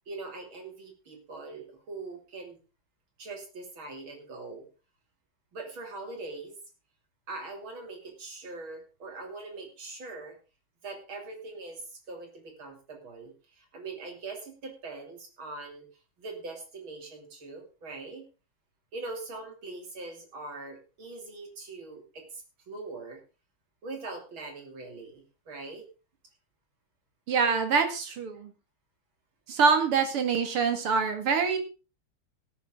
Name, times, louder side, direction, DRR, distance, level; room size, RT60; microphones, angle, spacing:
voice 1, 0.1-2.6 3.2-4.7 5.5-6.6 7.3-10.4 10.8-15.9 16.2-18.3 18.9-23.2 23.8-25.8, right 3 dB, 65° right, 3 dB, 3.7 m, -42 dB
voice 2, 27.3-28.5 29.5-31.6, right 5 dB, 85° right, 7 dB, 2.9 m, -25 dB
17.0 x 9.6 x 3.7 m, 0.32 s
omnidirectional pair, 2.4 m